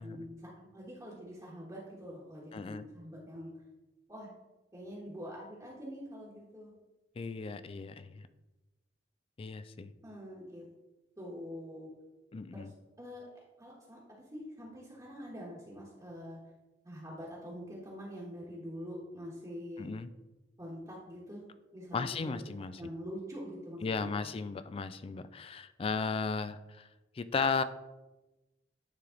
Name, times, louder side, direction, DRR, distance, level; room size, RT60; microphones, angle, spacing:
voice 1, 0.0-3.5 4.1-4.3 4.7-6.7 10.0-10.7 11.2-11.9 12.5-12.7 13.0-16.4 16.8-19.9 20.6-21.4 21.7-22.3 22.8-24.3, equal, 20° right, -5 dB, 1.2 m, -45 dB
voice 2, 2.5-2.8 7.2-8.2 9.4-9.9 12.3-12.7 19.8-20.1 21.9-22.8 23.8-26.9 27.2-27.6, left 4 dB, 30° left, 13 dB, 0.3 m, -35 dB
9.5 x 3.4 x 3.8 m, 1.1 s
head